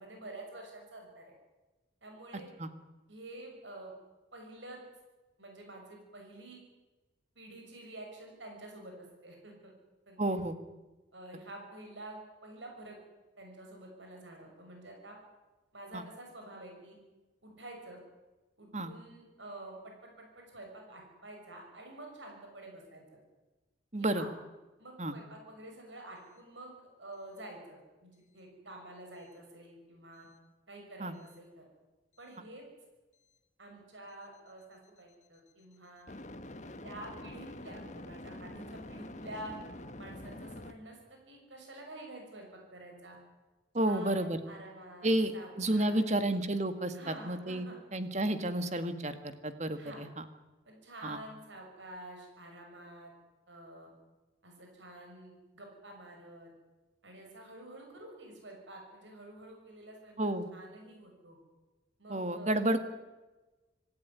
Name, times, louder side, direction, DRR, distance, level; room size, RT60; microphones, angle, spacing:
voice 1, 0.0-1.3 2.0-2.5 3.1-3.9 4.3-4.8 5.4-6.6 7.4-9.7 10.1-10.2 11.1-13.0 13.4-15.2 15.7-17.0 17.4-18.0 18.6-23.2 24.0-24.3 24.8-30.3 30.7-31.6 32.2-32.6 33.6-36.1 36.8-39.5 40.0-42.5 42.7-43.2 43.8-46.1 46.9-47.8 49.7-50.0 50.6-53.1 53.5-53.9 54.4-56.5 57.0-60.1 60.5-61.4 62.0-62.5, right 1 dB, 75° right, 2 dB, 6.4 m, -49 dB
voice 2, 10.2-10.6 15.9-16.0 18.7-18.9 23.9-24.2 25.0-25.1 31.0-31.1 43.7-44.4 45.0-47.7 47.9-50.2 51.0-51.2 60.2-60.5 62.1-62.8, right 1 dB, 35° right, 9 dB, 1.9 m, -31 dB
sound 1, 31.2-31.4 36.1-40.7, left 1 dB, 40° left, 1.3 m, -46 dB
26.5 x 14.5 x 9.6 m, 1.1 s
head